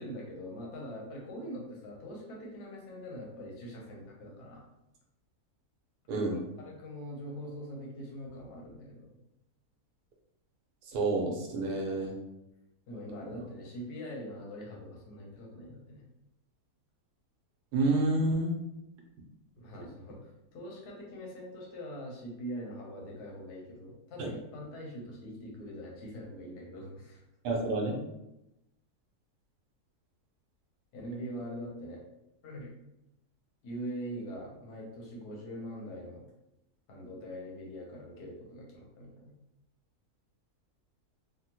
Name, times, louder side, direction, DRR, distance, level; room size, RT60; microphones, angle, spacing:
voice 1, 0.0-4.6 6.1-9.1 12.9-16.0 19.6-27.2 30.9-32.0 32.4-32.7 33.6-36.3 36.9-39.3, equal, 85° left, -2 dB, 1.4 m, -43 dB
voice 2, 6.1-6.4 10.9-12.1 17.7-18.6 24.2-24.3 27.4-28.0, right 2 dB, 85° right, 0 dB, 1.2 m, -29 dB
3.4 x 2.1 x 2.8 m, 0.89 s
omnidirectional pair, 1.7 m